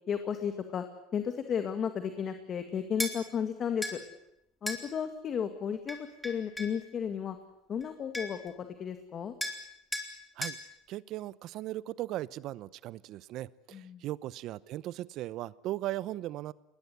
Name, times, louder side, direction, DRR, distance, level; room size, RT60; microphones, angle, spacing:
voice 1, 0.1-0.9 1.1-4.0 4.6-7.4 7.7-9.3 13.7-14.0, left 7 dB, 40° left, 8 dB, 2.0 m, -34 dB
sound 1, 3.0-3.2 3.8-4.0 4.7-4.8 5.9-6.8 7.8-7.9 8.1-8.5 9.4-9.6 9.9-10.1 10.4-10.6, left 1 dB, 5° left, 4.0 m, -35 dB
voice 2, 10.9-16.5, right 15 dB, 60° right, 20 dB, 0.8 m, -38 dB
21.0 x 20.0 x 9.5 m, 0.85 s
supercardioid pair, 100°, 0 cm